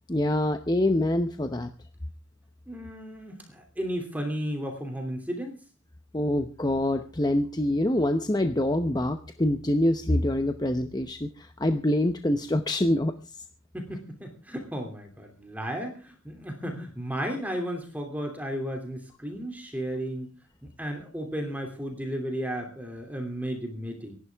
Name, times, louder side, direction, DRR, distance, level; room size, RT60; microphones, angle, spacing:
voice 1, 0.1-1.7 6.1-13.1, left 1 dB, 20° left, 7 dB, 0.8 m, -25 dB
voice 2, 2.7-5.6 13.7-20.3 20.6-24.2, equal, 10° right, 3 dB, 2.7 m, -34 dB
26.0 x 11.5 x 3.5 m, 0.34 s
head